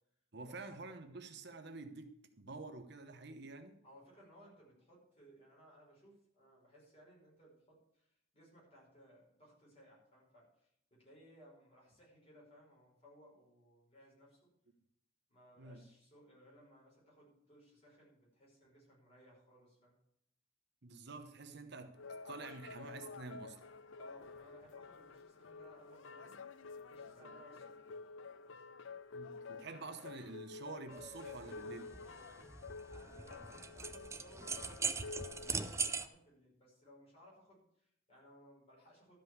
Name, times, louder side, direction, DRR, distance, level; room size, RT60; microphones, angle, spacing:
voice 1, 0.3-3.8 15.6-15.8 20.8-22.0 22.2-23.6 27.2-27.3 29.1-32.0, right 3 dB, 55° right, 0.9 m, -49 dB
voice 2, 3.8-14.5 15.3-19.9 24.0-28.0 28.4-28.7 32.9-39.1, equal, 30° left, 5.3 m, -62 dB
sound 1, 21.9-36.1, left 4 dB, 70° left, 0.6 m, -50 dB
sound 2, 30.9-36.1, right 5 dB, 15° right, 0.5 m, -41 dB
12.5 x 5.2 x 7.8 m
head